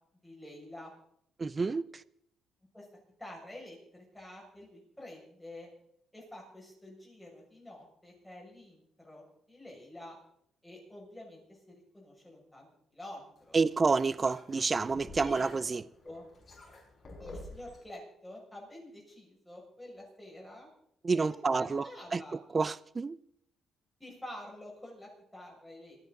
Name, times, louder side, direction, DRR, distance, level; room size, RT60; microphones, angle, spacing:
voice 1, 0.2-0.9 2.7-2.8 3.2-5.7 6.1-10.2 10.6-13.6 15.2-15.8 16.0-16.2 17.2-20.7 21.1-22.4 24.0-26.0, left 1 dB, 5° left, 6.7 m, -48 dB
voice 2, 1.4-2.0 13.5-15.9 21.0-22.2 22.5-23.2, right 4 dB, 30° right, 0.5 m, -29 dB
sound 1, 13.4-17.8, left 2 dB, 35° left, 7.1 m, -50 dB
27.0 x 9.6 x 4.1 m
cardioid pair, 90°, 0 cm